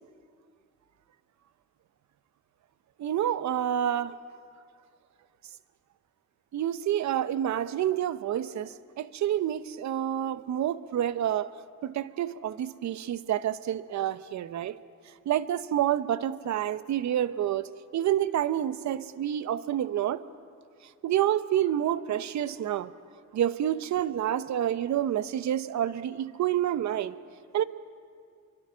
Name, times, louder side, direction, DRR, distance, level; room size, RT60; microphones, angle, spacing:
voice 1, 3.0-4.1 6.5-11.5 11.8-14.8 15.3-20.2 21.0-22.9 23.3-27.1 27.5-27.6, right 11 dB, 65° right, 14 dB, 1.0 m, -28 dB
28.0 x 24.0 x 6.3 m, 2.3 s
cardioid pair, 90°, 30 cm